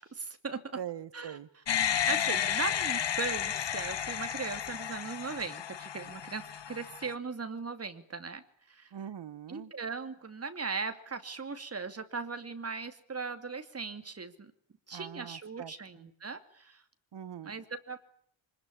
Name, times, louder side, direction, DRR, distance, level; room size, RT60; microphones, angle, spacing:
voice 1, 0.0-0.8 1.1-1.4 2.0-8.9 9.5-14.5 14.9-16.8 17.4-18.0, right 4 dB, 30° right, 8 dB, 2.6 m, -39 dB
voice 2, 0.8-1.5 8.9-9.7 14.9-16.1 17.1-17.5, right 9 dB, 60° right, 14 dB, 1.3 m, -43 dB
sound 1, 1.7-7.1, left 9 dB, 60° left, 1.5 m, -32 dB
25.5 x 20.5 x 9.9 m, 0.63 s
wide cardioid pair, 155°, 47 cm